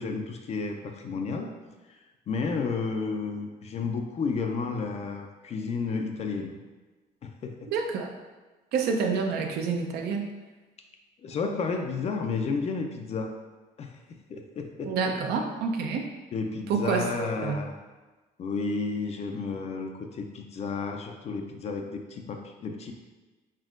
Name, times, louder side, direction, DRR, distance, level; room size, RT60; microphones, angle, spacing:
voice 1, 0.0-1.6 2.3-6.5 7.2-7.7 11.2-13.4 13.8-14.0 14.3-15.1 16.3-17.7 18.4-22.9, left 4 dB, 40° left, 4 dB, 0.4 m, -32 dB
voice 2, 7.7-8.1 8.7-10.3 14.9-16.1 16.7-17.6, right 5 dB, 75° right, 3 dB, 0.6 m, -28 dB
4.4 x 3.4 x 2.4 m, 1.2 s
cardioid pair, 110°, 17 cm